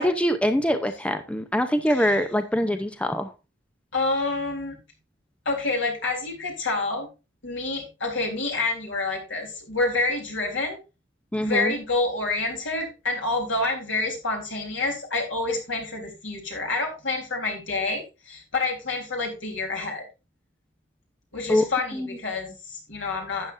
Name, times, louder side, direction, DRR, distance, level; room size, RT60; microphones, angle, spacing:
voice 1, 0.0-3.3 11.3-11.7 21.5-21.6 22.0-22.1, equal, 5° left, 0.6 m, -23 dB
voice 2, 1.9-2.2 3.9-4.8 5.5-7.1 7.4-10.8 11.4-20.0 21.3-23.5, left 3 dB, 80° left, 3.7 m, -28 dB
12.0 x 8.7 x 2.6 m
head